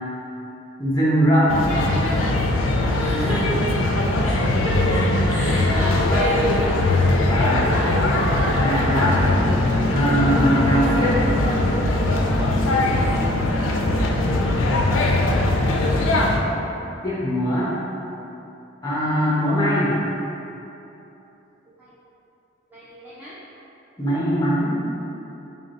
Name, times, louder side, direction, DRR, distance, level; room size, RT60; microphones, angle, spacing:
voice 1, 0.8-1.5 7.3-7.6 8.4-9.3 9.9-11.2 17.0-17.7 18.8-20.0 24.0-24.7, equal, 20° left, -7 dB, 0.7 m, -21 dB
sound 1, 1.5-16.4, left 2 dB, 75° left, 0.4 m, -20 dB
voice 2, 2.9-6.8 7.5-8.0 13.2-13.4 13.7-14.1 15.4-16.4 19.1-19.3 21.8-21.9 22.7-23.4, right 1 dB, 10° right, -10 dB, 0.3 m, -31 dB
sound 2, 8.6-14.1, equal, 65° right, 0.9 m, -30 dB
3.4 x 2.6 x 4.0 m, 2.9 s
head